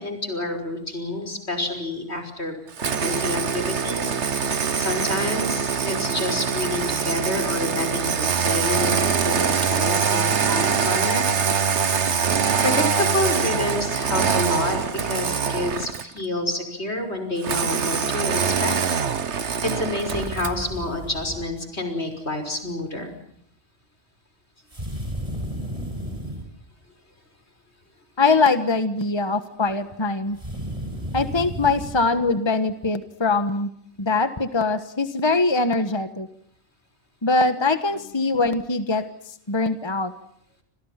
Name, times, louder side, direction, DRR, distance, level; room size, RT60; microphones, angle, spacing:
voice 1, 0.0-2.6 2.9-11.3 12.6-18.8 19.6-23.1, left 2 dB, 70° left, 6 dB, 6.0 m, -28 dB
Engine starting, 2.8-16.2 17.4-20.6, right 6 dB, 85° right, 1.6 m, -23 dB
sound 1, 20.0-21.5 24.7-26.5 30.3-32.0, equal, 30° right, 6.0 m, -33 dB
voice 2, 28.2-30.4 31.1-33.7 34.0-36.3 37.2-39.1 39.5-40.1, left 3 dB, 25° left, 10 dB, 1.4 m, -22 dB
29.0 x 28.0 x 5.9 m, 0.66 s
omnidirectional pair, 1.1 m